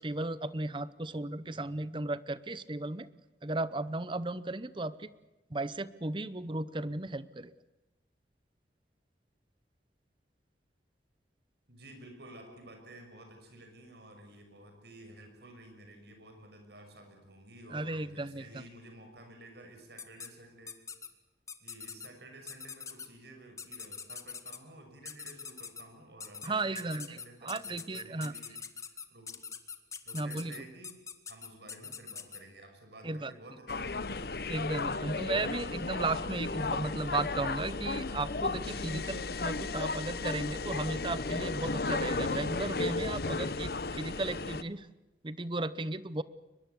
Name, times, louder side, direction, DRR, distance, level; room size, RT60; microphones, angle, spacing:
voice 1, 0.0-3.1 3.4-5.1 5.5-7.5 17.7-18.6 26.4-27.2 27.4-28.3 30.1-30.5 33.0-33.3 34.5-44.9 45.2-46.2, right 2 dB, 30° right, 16 dB, 0.8 m, -35 dB
voice 2, 1.5-1.8 11.7-20.8 21.6-29.4 30.0-31.0 31.3-34.1, right 1 dB, 70° right, 5 dB, 6.5 m, -52 dB
sound 1, 20.0-20.3 20.7-21.1 21.5-22.1 22.5-23.1 23.6-24.6 25.1-25.8 26.2-26.5 26.7-32.4, left 6 dB, 20° left, 1.3 m, -43 dB
sound 2, 33.7-44.6, left 3 dB, 60° left, 0.9 m, -34 dB
23.5 x 21.0 x 8.3 m, 1.0 s
head